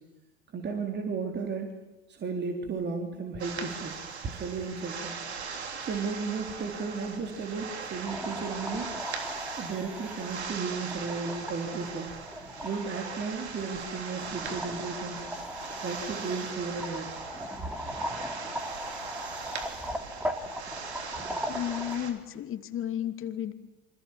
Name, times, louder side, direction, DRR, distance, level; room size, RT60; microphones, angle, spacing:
voice 1, 0.5-1.8 2.1-5.1 5.8-8.9 9.6-12.2 12.6-15.3 15.8-17.1, right 4 dB, 30° right, 3 dB, 3.6 m, -34 dB
sound 1, 3.4-22.1, right 5 dB, 75° right, 3.5 m, -40 dB
sound 2, 8.0-22.0, equal, 5° right, 2.9 m, -39 dB
voice 2, 21.5-23.5, left 10 dB, 40° left, 9 dB, 2.6 m, -33 dB
28.0 x 25.5 x 7.5 m, 1.0 s
figure-of-eight pair, 70°, 33 cm